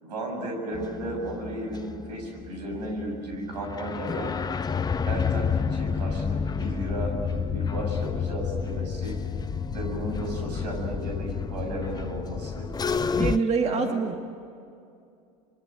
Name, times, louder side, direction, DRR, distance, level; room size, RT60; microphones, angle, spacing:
voice 1, 0.0-4.3 5.1-9.1 9.7-12.7 13.6-14.0, right 1 dB, 85° right, 2 dB, 7.9 m, -34 dB
sound 1, 0.7-13.4, left 6 dB, 20° left, 0.8 m, -30 dB
voice 2, 13.2-14.3, right 5 dB, 30° right, 5 dB, 2.0 m, -25 dB
28.0 x 22.5 x 9.2 m, 2.4 s
hypercardioid pair, 90°, 21 cm